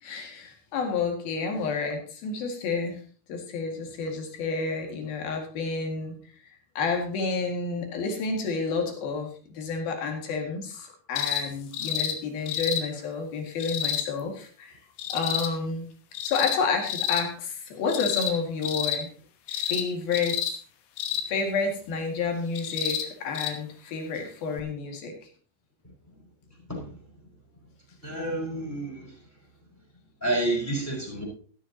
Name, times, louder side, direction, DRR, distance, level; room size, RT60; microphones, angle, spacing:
voice 1, 0.0-3.0 3.3-6.1 6.5-14.8 15.1-15.9 16.2-19.1 19.5-20.4 21.3-25.1, left 4 dB, 55° left, 3 dB, 3.4 m, -30 dB
sound 1, 11.2-11.4 11.7-12.1 12.5-12.8 13.6-14.1 15.0-15.5 16.1-16.6 16.9-17.2 17.9-18.4 18.6-19.0 19.5-19.8 20.1-20.5 21.0-21.3 22.6-23.0 23.4-23.5 24.6-24.7, left 9 dB, 70° left, 3.3 m, -29 dB
voice 2, 28.0-29.1 30.2-31.2, right 2 dB, 5° left, -1 dB, 4.2 m, -29 dB
15.0 x 12.5 x 2.9 m, 0.41 s
omnidirectional pair, 5.8 m